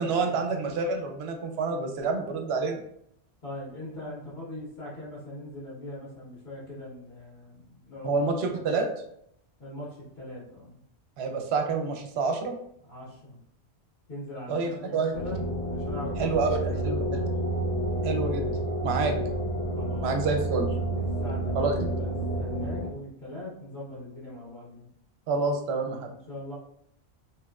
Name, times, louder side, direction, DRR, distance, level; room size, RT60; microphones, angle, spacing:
voice 1, 0.0-2.8 8.0-8.9 11.2-12.5 14.5-15.1 16.2-17.0 18.0-19.1 20.0-20.7 21.5-21.9 25.3-26.1, right 4 dB, 75° right, 4 dB, 0.8 m, -28 dB
voice 2, 3.4-8.2 8.5-8.7 9.6-10.8 12.9-13.4 14.1-17.2 19.7-20.1 20.9-24.9 26.1-26.6, left 1 dB, 70° left, -7 dB, 1.4 m, -41 dB
sound 1, 15.1-22.9, right 1 dB, 85° left, 1.5 m, -29 dB
3.0 x 3.0 x 2.3 m, 0.72 s
omnidirectional pair, 1.1 m